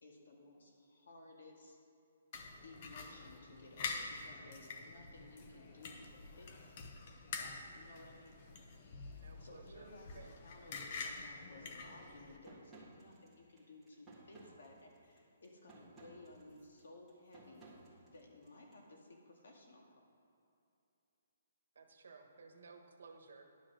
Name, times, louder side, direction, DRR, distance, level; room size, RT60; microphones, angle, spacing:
voice 1, 0.0-1.8 2.6-6.7 7.3-8.4 9.4-17.6 18.0-20.0, left 2 dB, 75° left, 1 dB, 2.1 m, -57 dB
sound 1, 2.3-12.4, left 4 dB, 35° left, 0.9 m, -47 dB
voice 2, 9.1-10.4 10.7-11.2 21.7-23.4, right 4 dB, 75° right, 4 dB, 1.3 m, -58 dB
sound 2, 12.4-18.8, right 2 dB, 5° right, 1.7 m, -60 dB
10.5 x 6.4 x 6.2 m, 2.8 s
hypercardioid pair, 165°, 0 cm